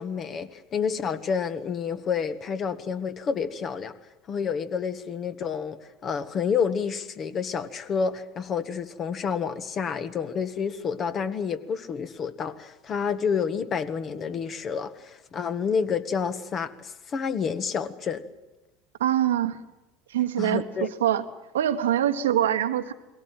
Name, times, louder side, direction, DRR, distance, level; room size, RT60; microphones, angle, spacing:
voice 1, 0.0-3.9 4.3-18.2 20.4-20.9, left 6 dB, 40° left, 10 dB, 1.6 m, -29 dB
voice 2, 19.0-19.6 20.1-21.2 21.5-22.9, right 11 dB, 85° right, 8 dB, 1.3 m, -24 dB
21.5 x 17.5 x 9.1 m, 1.0 s
hypercardioid pair, 80°, 0 cm